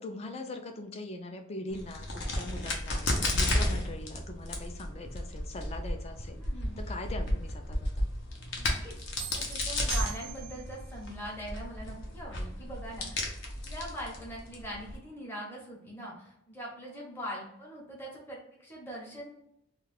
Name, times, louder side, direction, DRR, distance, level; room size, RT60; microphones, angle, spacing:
voice 1, 0.0-6.4 6.8-8.1, left 2 dB, 30° left, 5 dB, 0.4 m, -41 dB
Crack, 1.7-15.0, left 1 dB, 65° left, 0.7 m, -33 dB
voice 2, 6.4-6.8 8.6-13.3 13.6-19.3, equal, 10° left, -4 dB, 0.8 m, -42 dB
sound 1, 9.2-10.8, right 15 dB, 80° right, 0.3 m, -41 dB
2.3 x 2.3 x 3.2 m, 0.77 s
head